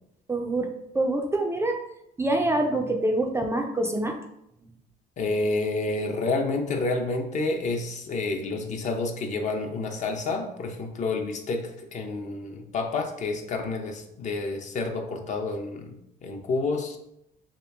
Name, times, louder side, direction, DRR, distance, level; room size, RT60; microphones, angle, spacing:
voice 1, 0.3-0.7 0.9-1.8 2.2-4.2, right 1 dB, 15° right, 3 dB, 0.3 m, -25 dB
voice 2, 5.2-15.9 16.2-17.0, left 3 dB, 45° left, 3 dB, 0.6 m, -29 dB
3.1 x 2.9 x 3.4 m, 0.79 s
cardioid pair, 110°, 17 cm